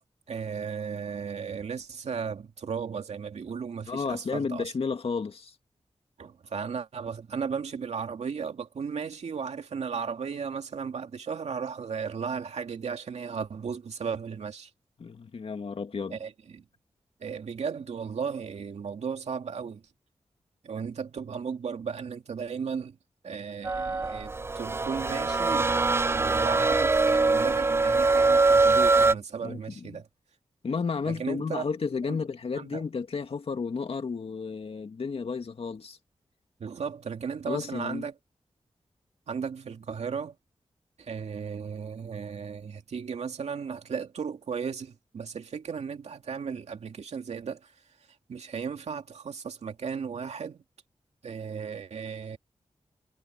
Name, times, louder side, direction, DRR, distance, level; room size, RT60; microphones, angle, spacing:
voice 1, 0.3-4.7 6.2-14.7 16.1-16.7 17.2-19.8 20.6-23.0 23.2-25.8 26.1-30.1 31.1-31.6 32.1-32.2 32.5-32.8 36.6-38.1 39.3-40.4 41.0-47.7 48.3-50.6 51.2-52.4, right 6 dB, 85° right, 2.5 m, -35 dB
voice 2, 3.9-5.5 15.0-16.2 29.4-29.6 30.6-36.0 37.5-38.0, left 5 dB, 60° left, 2.3 m, -32 dB
sound 1, 23.6-29.1, right 3 dB, 20° right, 0.4 m, -23 dB
wide cardioid pair, 110°, 11 cm